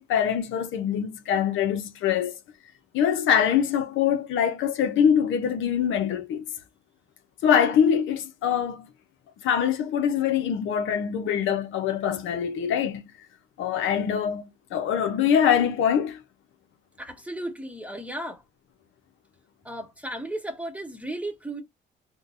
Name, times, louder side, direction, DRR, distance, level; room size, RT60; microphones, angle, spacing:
voice 1, 0.0-2.4 2.9-6.4 7.4-8.9 9.4-13.0 13.6-16.2, left 8 dB, 85° left, 0.7 m, -24 dB
voice 2, 17.0-18.4 19.6-21.6, right 1 dB, 5° right, 0.9 m, -35 dB
3.7 x 2.2 x 2.6 m
cardioid pair, 90°, 20 cm